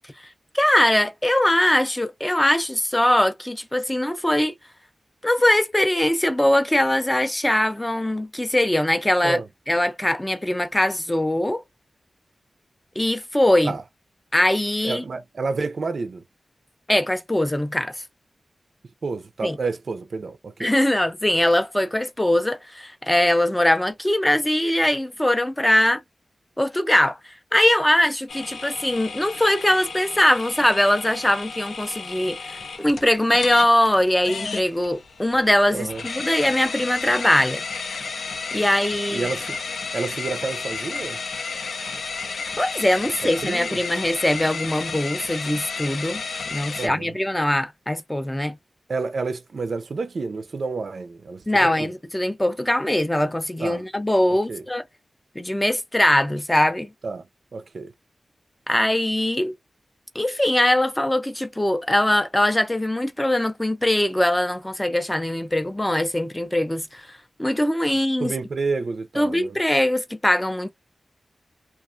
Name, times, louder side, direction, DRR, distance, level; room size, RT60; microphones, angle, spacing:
voice 1, 0.5-4.6 5.2-9.4 9.7-11.6 13.0-13.7 14.3-15.0 16.9-18.0 19.4-19.6 20.6-26.0 26.6-37.6 38.5-39.3 42.6-46.2 46.5-48.6 51.5-54.8 55.4-56.9 58.7-59.5 60.1-68.3 69.2-70.7, left 1 dB, 10° left, 0.4 m, -21 dB
voice 2, 14.8-16.2 19.0-20.7 35.7-36.0 39.1-39.6 39.9-41.2 43.2-43.8 46.8-47.1 48.9-51.9 53.6-53.8 54.3-54.6 57.0-57.2 57.5-57.9 68.2-69.6, right 4 dB, 65° right, 0.4 m, -29 dB
sound 1, 28.3-46.9, left 4 dB, 80° left, 0.4 m, -32 dB
2.3 x 2.3 x 2.5 m
wide cardioid pair, 105°, 0 cm